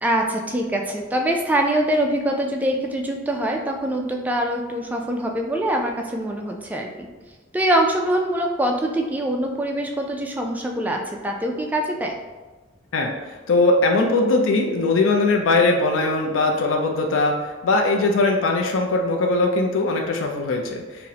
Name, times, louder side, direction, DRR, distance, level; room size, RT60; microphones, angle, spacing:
voice 1, 0.0-7.1 7.5-12.1, right 1 dB, 10° right, 1 dB, 0.3 m, -24 dB
voice 2, 12.9-21.1, left 2 dB, 85° left, 2 dB, 0.4 m, -20 dB
3.9 x 2.1 x 2.8 m, 1.2 s
head